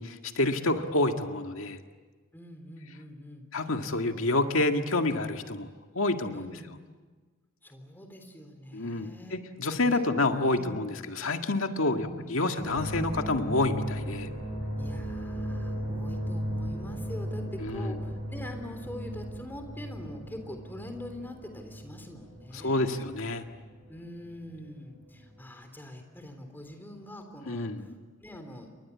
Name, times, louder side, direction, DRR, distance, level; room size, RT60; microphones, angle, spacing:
voice 1, 0.0-1.8 3.5-5.7 5.9-6.5 8.7-14.3 17.6-18.0 22.5-23.4 27.5-27.9, left 2 dB, 75° left, 5 dB, 1.9 m, -28 dB
voice 2, 2.3-3.5 4.2-4.5 6.3-6.7 7.6-9.4 9.8-10.1 10.4-10.8 11.8-12.8 14.8-23.0 23.9-27.7 28.2-28.7, left 1 dB, 10° left, 5 dB, 3.5 m, -44 dB
sound 1, 12.6-24.7 25.0-25.4, equal, 20° right, 7.6 m, -36 dB
29.0 x 23.5 x 8.4 m, 1.4 s
head